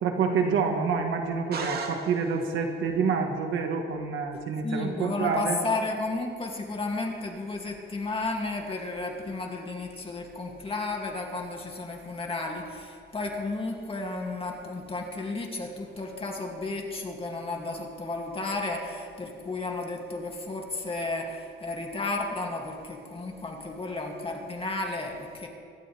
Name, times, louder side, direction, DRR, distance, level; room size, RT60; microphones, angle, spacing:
voice 1, 0.0-5.6, right 5 dB, 80° right, 4 dB, 1.5 m, -27 dB
sound 1, 1.5-2.6, right 4 dB, 50° right, 2.1 m, -36 dB
voice 2, 4.6-25.5, left 2 dB, 30° left, 0 dB, 2.5 m, -33 dB
25.0 x 12.5 x 3.5 m, 2.2 s
cardioid pair, 90°, 20 cm